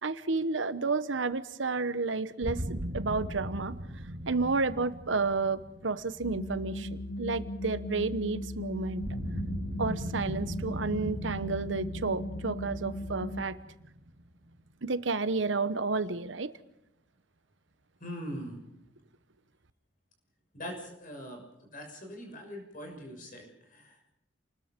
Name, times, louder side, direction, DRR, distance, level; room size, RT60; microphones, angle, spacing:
voice 1, 0.0-3.8 4.3-9.0 9.8-13.6 14.8-16.5, right 3 dB, 80° right, 14 dB, 1.0 m, -31 dB
sound 1, 2.4-7.4 9.0-14.7, equal, 50° right, 2.5 m, -39 dB
sound 2, 6.2-13.4, left 1 dB, 70° left, 1.6 m, -38 dB
voice 2, 18.0-18.6 20.5-21.4 21.7-24.1, equal, 45° left, 3 dB, 6.3 m, -42 dB
28.5 x 20.5 x 5.2 m, 0.85 s
head